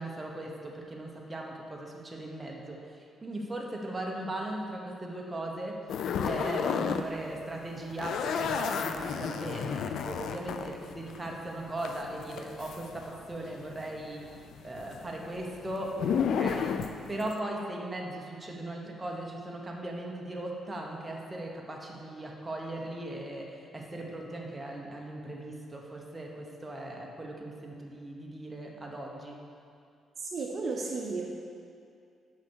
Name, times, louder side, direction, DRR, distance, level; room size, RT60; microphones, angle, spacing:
voice 1, 0.0-5.8 6.2-14.3 14.6-16.8 17.1-29.4, right 1 dB, 15° right, -1 dB, 0.9 m, -38 dB
sound 1, 5.9-7.1 7.3-13.5 13.8-17.4, left 7 dB, 75° left, 0.4 m, -32 dB
voice 2, 30.2-31.3, right 3 dB, 45° right, -1 dB, 0.7 m, -33 dB
5.8 x 5.7 x 6.2 m, 2.4 s
cardioid pair, 125°, 0 cm